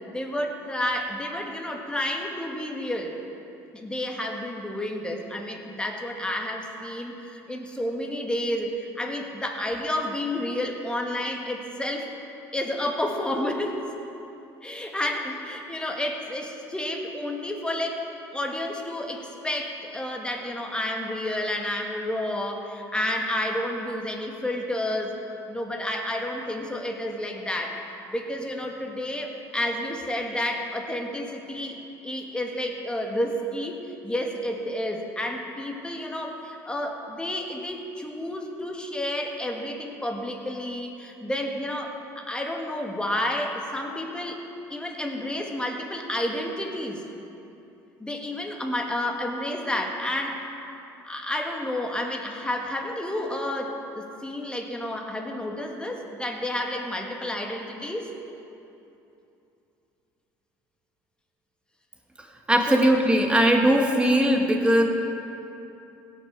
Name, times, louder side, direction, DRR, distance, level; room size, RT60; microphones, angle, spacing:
voice 1, 0.1-3.1 3.7-12.1 12.5-13.8 14.6-18.0 18.3-25.2 25.5-27.8 28.1-31.8 32.0-33.8 34.0-44.4 44.7-47.0 48.0-50.4 51.0-58.1 62.7-62.8, left 1 dB, 10° left, 1 dB, 1.7 m, -30 dB
voice 2, 62.5-64.8, right 1 dB, 10° right, 2 dB, 1.6 m, -19 dB
17.0 x 6.3 x 4.7 m, 2.8 s
hypercardioid pair, 75°, 10 cm